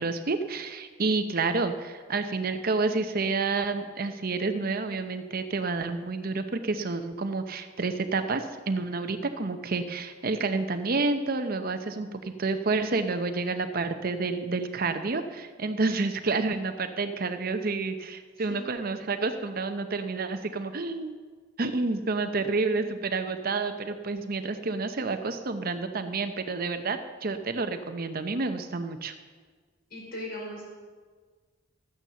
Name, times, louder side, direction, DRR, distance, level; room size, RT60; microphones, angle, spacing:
voice 1, 0.0-21.1 21.6-29.1, right 3 dB, 50° right, 8 dB, 0.8 m, -29 dB
voice 2, 29.9-30.6, left 1 dB, 55° left, -3 dB, 5.3 m, -38 dB
13.5 x 9.2 x 6.9 m, 1.5 s
head